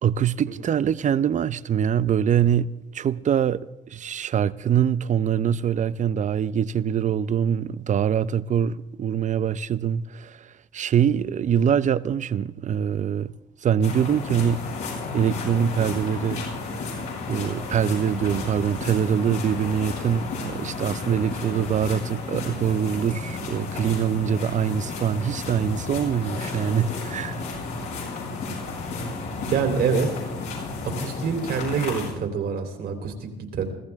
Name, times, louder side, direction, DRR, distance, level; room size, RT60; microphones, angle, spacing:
voice 1, 0.0-13.3 13.6-14.7 15.1-16.4 17.3-27.4, right 8 dB, 45° right, 0.7 m, -24 dB
sound 1, 13.8-32.1, left 3 dB, 85° left, 7.8 m, -32 dB
voice 2, 29.5-30.1 31.0-33.7, right 6 dB, 65° right, 3.5 m, -26 dB
24.5 x 15.0 x 3.6 m
supercardioid pair, 75°, 18 cm